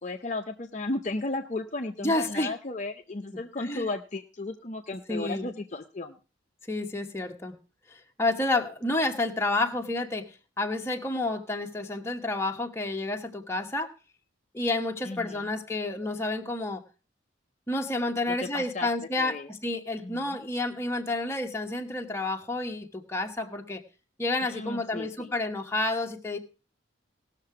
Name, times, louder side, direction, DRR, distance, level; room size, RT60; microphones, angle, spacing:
voice 1, 0.0-6.2 15.0-15.5 18.3-18.9 19.2-19.5 19.9-20.4 24.4-25.3, left 2 dB, 35° left, 4 dB, 0.6 m, -35 dB
voice 2, 2.0-2.5 3.3-3.4 3.6-3.9 5.1-5.5 6.7-7.5 7.9-10.2 10.6-13.9 14.5-16.8 17.7-23.8 24.2-26.4, left 2 dB, 15° left, 3 dB, 1.0 m, -30 dB
18.0 x 6.7 x 4.8 m, 0.34 s
head